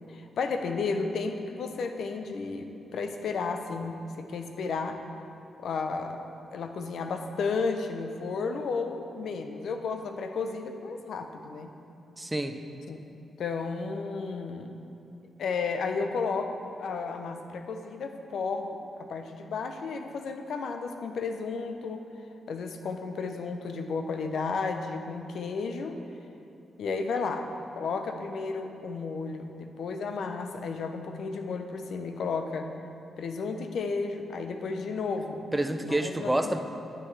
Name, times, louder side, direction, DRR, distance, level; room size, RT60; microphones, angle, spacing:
voice 1, 0.1-5.0 5.6-11.7 12.9-13.0 13.4-14.7 15.4-22.0 22.5-26.0 26.8-27.5 27.8-32.7 33.2-35.4 35.8-36.5, left 4 dB, 70° left, 6 dB, 0.6 m, -33 dB
voice 2, 12.2-12.6 35.5-36.6, right 1 dB, 10° right, 6 dB, 0.5 m, -28 dB
9.4 x 9.3 x 3.3 m, 2.8 s
cardioid pair, 105°, 0 cm